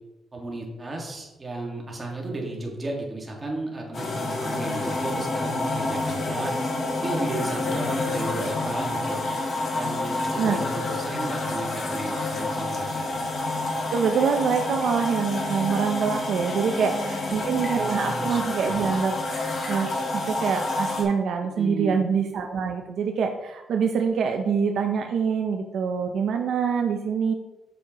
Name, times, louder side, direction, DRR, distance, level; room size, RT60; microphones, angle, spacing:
voice 1, 0.3-6.6 6.9-9.2 9.7-13.1 16.5-17.4 17.6-18.8 21.6-22.0, right 2 dB, 25° right, -1 dB, 1.7 m, -34 dB
sound 1, 3.9-21.0, left 2 dB, 45° left, 1.5 m, -28 dB
voice 2, 13.9-27.3, right 6 dB, 65° right, 4 dB, 0.5 m, -25 dB
7.5 x 6.5 x 2.9 m, 1.0 s
cardioid pair, 120°, 0 cm